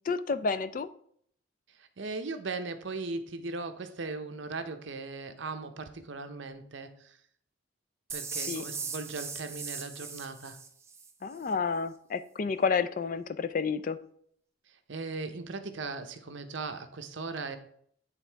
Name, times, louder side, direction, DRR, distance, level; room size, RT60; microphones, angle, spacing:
voice 1, 0.1-0.9 8.4-8.6 11.2-14.0, left 5 dB, 40° left, 13 dB, 0.3 m, -30 dB
voice 2, 2.0-7.2 8.1-10.6 14.9-17.6, right 3 dB, 65° right, 8 dB, 0.7 m, -38 dB
sound 1, 8.1-11.1, right 5 dB, 15° right, 0.5 m, -39 dB
9.1 x 3.6 x 4.5 m, 0.65 s
head